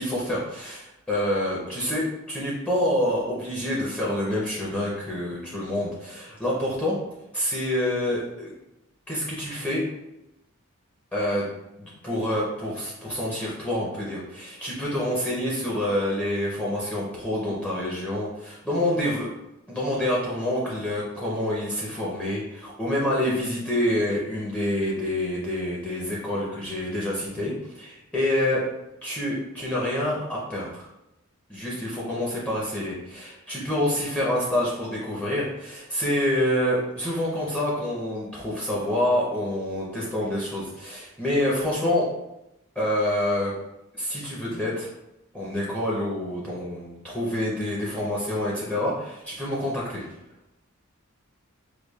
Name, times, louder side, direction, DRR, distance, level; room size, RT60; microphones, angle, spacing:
voice 1, 0.0-7.0 7.3-8.5 9.1-9.8 11.1-11.5 11.8-19.3 19.7-28.7 29.0-30.9 31.5-42.1 42.8-43.5 44.0-44.9 45.3-50.0, left 1 dB, 5° left, -6 dB, 0.6 m, -27 dB
4.8 x 2.3 x 2.3 m, 0.90 s
head